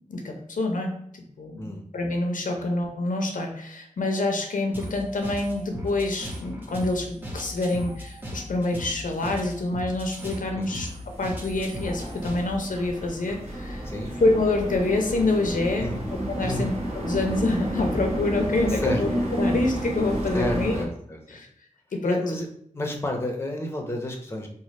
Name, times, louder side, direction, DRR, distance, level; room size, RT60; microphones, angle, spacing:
voice 1, 0.1-1.0 1.4-13.9 14.2-15.9 16.3-20.7 21.3-21.5 21.9-22.2, left 2 dB, 75° left, 2 dB, 0.6 m, -26 dB
sound 1, 4.7-12.7, equal, 15° right, 0.9 m, -37 dB
sound 2, 10.9-20.8, equal, 50° right, 1.1 m, -31 dB
voice 2, 13.8-14.2 15.8-16.0 16.4-16.7 18.7-19.0 20.3-21.4 22.0-22.5 22.7-24.5, left 1 dB, 20° left, 2 dB, 0.6 m, -30 dB
3.1 x 2.1 x 4.1 m, 0.69 s
wide cardioid pair, 70°, 14 cm